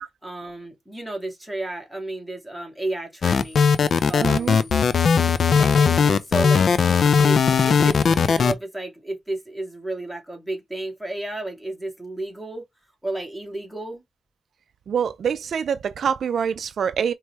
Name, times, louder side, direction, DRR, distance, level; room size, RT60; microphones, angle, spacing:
voice 1, 0.2-3.7 4.1-4.7 5.6-6.7 7.2-12.6 13.0-14.0, right 2 dB, ahead, 2.3 m, -32 dB
sound 1, 3.2-8.5, left 6 dB, 65° left, 0.4 m, -18 dB
voice 2, 4.2-4.6 14.9-17.1, right 7 dB, 70° right, 0.3 m, -25 dB
4.5 x 2.9 x 3.2 m
cardioid pair, 75°, 0 cm